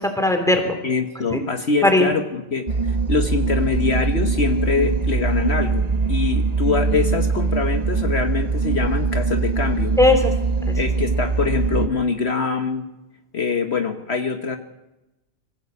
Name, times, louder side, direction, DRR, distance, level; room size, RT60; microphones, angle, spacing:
voice 1, 0.0-0.7 1.3-1.4 1.8-2.1 10.0-10.4 10.7-10.8, left 2 dB, ahead, 5 dB, 3.5 m, -18 dB
voice 2, 0.8-10.0 10.8-12.8 13.3-14.6, left 4 dB, 60° left, 6 dB, 1.6 m, -24 dB
sound 1, 2.7-11.9, right 4 dB, 35° right, 1.1 m, -22 dB
25.5 x 16.0 x 8.4 m, 0.97 s
omnidirectional pair, 1.3 m